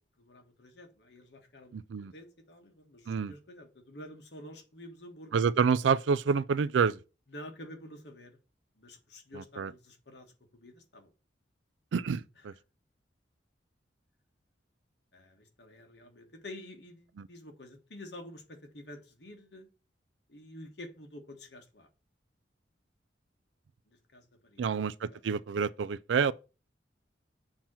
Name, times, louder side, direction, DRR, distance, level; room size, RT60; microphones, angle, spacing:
voice 1, 0.2-1.8 2.1-5.4 7.3-8.4 8.7-11.1 15.1-19.7 20.3-21.9 23.9-25.2, left 1 dB, 65° left, 1.4 m, -49 dB
voice 2, 1.7-2.1 3.1-3.3 5.3-7.0 9.3-9.7 11.9-12.5 17.2-17.3 24.6-26.3, right 6 dB, 85° right, 0.4 m, -28 dB
7.3 x 2.9 x 5.9 m
head